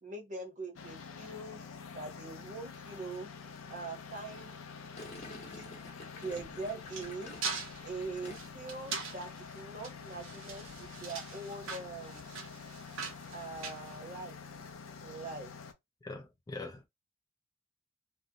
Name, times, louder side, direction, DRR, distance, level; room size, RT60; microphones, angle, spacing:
voice 1, 0.0-1.6 1.9-3.3 3.7-4.5 5.1-5.8 6.2-7.4 7.8-12.2 13.3-14.4 15.0-15.5, right 3 dB, 40° right, 0.8 m, -43 dB
sound 1, 0.8-15.7, left 5 dB, 80° left, 0.5 m, -47 dB
Gurgling, 5.0-8.7 9.0-9.4, left 2 dB, 35° left, 0.8 m, -50 dB
sound 2, 6.4-14.6, right 5 dB, 75° right, 0.7 m, -42 dB
voice 2, 16.0-16.9, left 3 dB, 20° left, 0.3 m, -43 dB
2.6 x 2.0 x 2.6 m
head